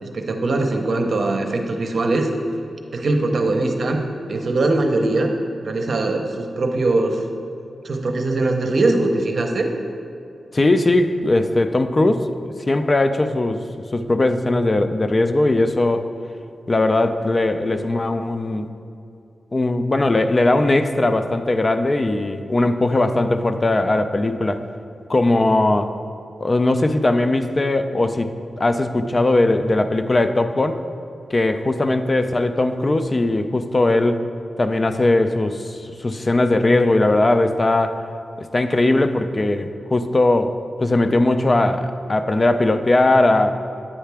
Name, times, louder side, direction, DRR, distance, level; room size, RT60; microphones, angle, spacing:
voice 1, 0.0-2.3 2.9-4.0 4.3-5.3 5.6-7.2 7.8-9.7, right 2 dB, 60° right, 4 dB, 0.7 m, -21 dB
voice 2, 10.5-13.6 13.9-16.1 16.7-18.7 19.5-24.6 25.1-25.9 26.4-28.3 28.6-30.8 31.3-34.3 34.6-38.0 38.4-43.5, left 2 dB, 35° left, 9 dB, 0.4 m, -19 dB
8.6 x 5.6 x 3.4 m, 2.6 s
cardioid pair, 75°, 0 cm